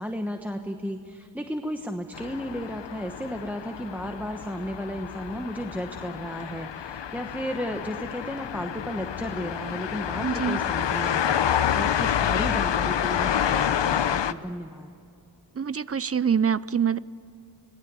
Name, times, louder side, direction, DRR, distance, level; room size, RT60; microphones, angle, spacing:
voice 1, 0.0-11.3 11.7-14.9, equal, 5° right, 5 dB, 1.1 m, -34 dB
sound 1, 2.1-14.3, left 9 dB, 75° left, 0.8 m, -28 dB
voice 2, 10.2-10.6 15.6-17.0, right 7 dB, 35° right, 18 dB, 0.5 m, -25 dB
26.0 x 18.5 x 8.3 m, 2.5 s
wide cardioid pair, 100°, 44 cm